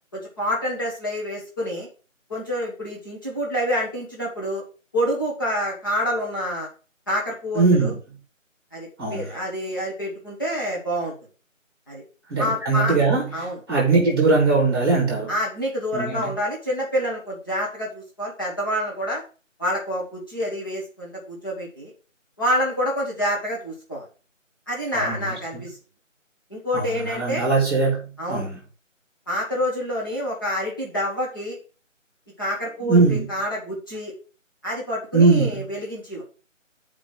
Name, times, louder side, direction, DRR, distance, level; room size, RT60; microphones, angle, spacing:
voice 1, 0.1-1.9 2.3-4.6 4.9-6.7 7.1-7.9 8.7-11.1 11.9-12.0 12.4-13.0 13.3-13.6 15.3-19.2 19.6-21.9 22.4-24.1 24.7-25.8 26.5-27.5 28.2-28.5 29.3-31.6 32.4-34.1 34.6-36.2, equal, 15° left, 1.7 m, -27 dB
voice 2, 7.5-8.0 9.0-9.2 12.3-13.2 13.7-15.3 15.9-16.3 24.9-25.3 26.7-28.6 32.8-33.2 35.1-35.6, right 3 dB, 20° right, 2.7 m, -20 dB
6.9 x 5.1 x 5.6 m
figure-of-eight pair, 175°, 39 cm